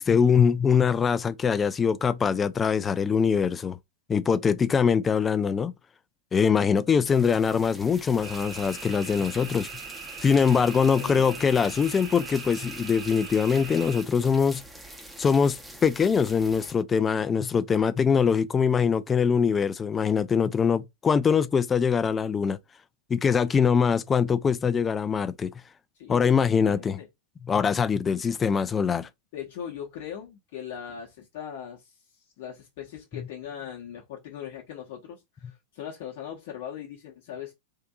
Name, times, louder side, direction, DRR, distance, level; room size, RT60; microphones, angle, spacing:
voice 1, 0.0-3.8 4.1-5.7 6.3-9.7 10.2-14.6 15.2-15.6 15.8-22.6 23.1-25.5 26.1-27.0 27.5-29.1, left 6 dB, 20° left, 0.3 m, -23 dB
sound 1, 7.0-16.7, right 1 dB, 5° right, 0.7 m, -44 dB
sound 2, 8.2-14.0, right 5 dB, 45° right, 1.3 m, -41 dB
voice 2, 10.5-11.3 26.0-27.1 29.3-31.9 32.4-37.6, left 9 dB, 50° left, 0.9 m, -40 dB
3.7 x 2.6 x 2.3 m
figure-of-eight pair, 90°, 0 cm